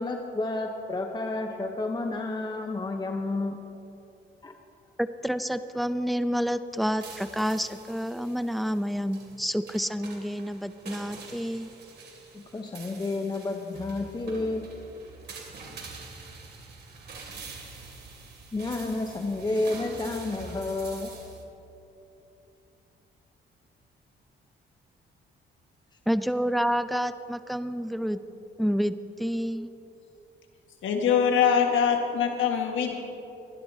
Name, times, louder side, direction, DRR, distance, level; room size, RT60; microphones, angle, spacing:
voice 1, 0.0-3.6 4.4-4.5 12.3-14.7 18.5-21.1, left 2 dB, 20° left, 3 dB, 0.9 m, -30 dB
voice 2, 5.0-11.7 26.1-28.2 28.6-29.7, equal, ahead, 11 dB, 0.5 m, -29 dB
sound 1, 6.7-21.4, right 4 dB, 55° right, 2.6 m, -45 dB
voice 3, 30.8-33.0, left 7 dB, 75° left, 2 dB, 1.6 m, -23 dB
22.5 x 11.0 x 2.8 m, 2.9 s
cardioid pair, 90°, 20 cm